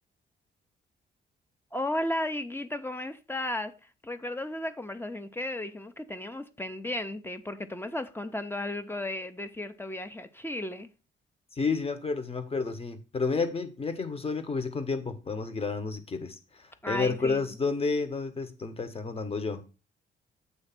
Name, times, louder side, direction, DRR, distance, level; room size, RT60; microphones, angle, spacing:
voice 1, 1.7-3.7 4.0-10.9 16.8-17.4, left 1 dB, 10° left, 0.7 m, -34 dB
voice 2, 11.5-19.6, left 4 dB, 30° left, 1.2 m, -31 dB
7.9 x 3.2 x 5.9 m
cardioid pair, 90°, 20 cm